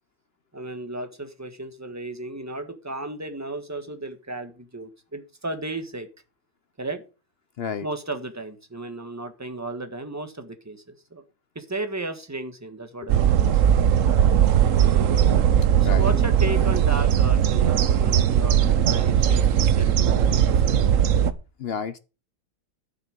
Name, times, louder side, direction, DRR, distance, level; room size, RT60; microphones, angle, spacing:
voice 1, 0.5-6.1 6.8-7.0 7.8-11.2 11.5-13.7 15.8-21.0, right 2 dB, 10° right, 1.3 m, -34 dB
sound 1, 13.1-21.3, right 9 dB, 60° right, 1.0 m, -19 dB
voice 2, 15.8-16.1 21.6-22.0, left 6 dB, 70° left, 0.6 m, -31 dB
12.0 x 6.8 x 5.1 m
omnidirectional pair, 1.8 m